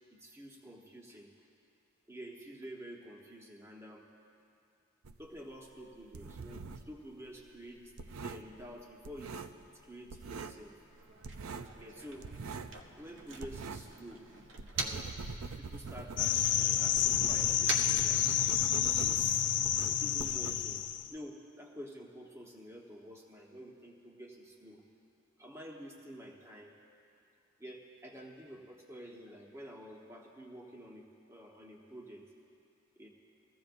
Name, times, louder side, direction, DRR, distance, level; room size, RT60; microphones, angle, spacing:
voice 1, 0.1-1.3 2.1-4.1 5.2-9.5 9.8-10.8 11.8-12.3 13.0-14.3 14.7-15.1 15.6-18.2 18.8-19.4 20.0-20.8 21.1-24.8 25.4-26.7 27.6-32.3 33.0-33.1, equal, 10° right, -1 dB, 1.1 m, -49 dB
sound 1, 5.0-7.0 7.3-9.8 10.1-10.7 10.9-14.0 14.3-21.0, right 4 dB, 80° right, 0.5 m, -44 dB
Motor vehicle (road), 10.8-15.3 15.6-18.8, right 3 dB, 60° right, 0.9 m, -44 dB
sound 2, 16.2-21.1, left 10 dB, 55° left, 0.4 m, -29 dB
21.0 x 15.0 x 2.6 m, 2.6 s
head